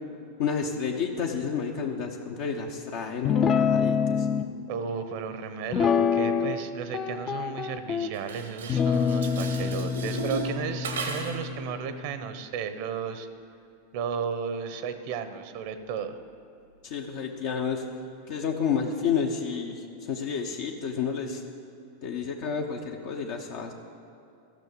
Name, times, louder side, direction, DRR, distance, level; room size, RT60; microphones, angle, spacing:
voice 1, 0.4-4.3 16.8-17.8 18.3-21.4 22.0-23.7, left 6 dB, 60° left, 1 dB, 0.9 m, -30 dB
Guitar, 3.2-4.5 5.7-6.6 6.9-8.1 8.7-12.2, left 6 dB, 30° left, 0.5 m, -26 dB
voice 2, 4.7-13.3 13.9-16.2, right 6 dB, 60° right, 10 dB, 0.8 m, -34 dB
Dishes pots and pans, 8.1-11.5, right 3 dB, 85° right, 1.2 m, -36 dB
13.5 x 5.9 x 6.8 m, 2.7 s
hypercardioid pair, 100°, 0 cm